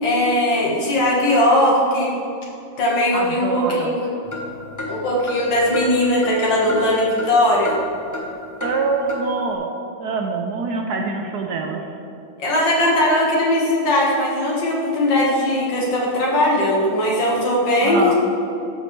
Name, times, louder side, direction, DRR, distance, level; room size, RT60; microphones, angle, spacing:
voice 1, 0.0-2.2 2.8-4.1 4.9-7.7 12.4-18.1, left 1 dB, 75° left, -4 dB, 2.3 m, -19 dB
voice 2, 3.1-4.0 8.6-9.7 10.0-11.8 17.8-18.1, right 4 dB, 70° right, 2 dB, 1.1 m, -25 dB
sound 1, 4.2-7.4 7.7-8.3 8.6-8.7 9.1-9.2, left 1 dB, 15° left, 0.8 m, -32 dB
13.0 x 5.2 x 3.2 m, 2.7 s
omnidirectional pair, 2.1 m